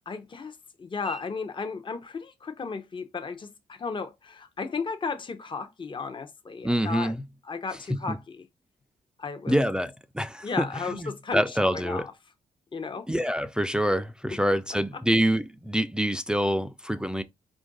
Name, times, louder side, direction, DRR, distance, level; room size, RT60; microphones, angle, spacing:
voice 1, 0.0-7.1 7.5-8.4 9.2-9.5 10.4-11.4 11.7-12.0 12.7-13.1, left 4 dB, 35° left, 0.7 m, -34 dB
voice 2, 6.6-7.2 7.9-8.2 9.5-12.1 13.1-17.2, equal, 5° right, 0.4 m, -26 dB
4.4 x 2.5 x 3.8 m
cardioid pair, 65°, 15 cm